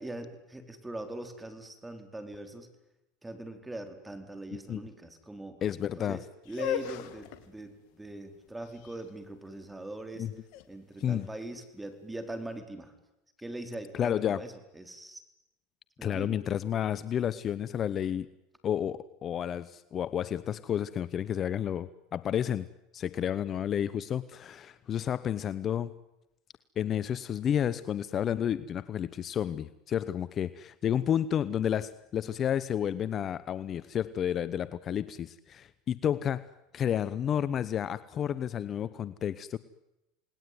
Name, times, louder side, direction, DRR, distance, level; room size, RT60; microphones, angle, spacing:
voice 1, 0.0-2.7 3.2-5.6 6.0-10.3 10.7-12.9 13.4-15.2 16.0-16.4, right 1 dB, 10° right, 8 dB, 4.5 m, -41 dB
voice 2, 5.6-6.2 10.2-10.3 11.0-11.3 13.9-14.4 16.0-18.3 18.6-22.7 22.9-25.9 26.8-36.5 36.7-39.6, left 9 dB, 40° left, 17 dB, 0.9 m, -31 dB
sound 1, 6.4-12.3, left 11 dB, 65° left, 2.7 m, -40 dB
28.5 x 19.5 x 9.6 m, 0.91 s
hypercardioid pair, 100°, 0 cm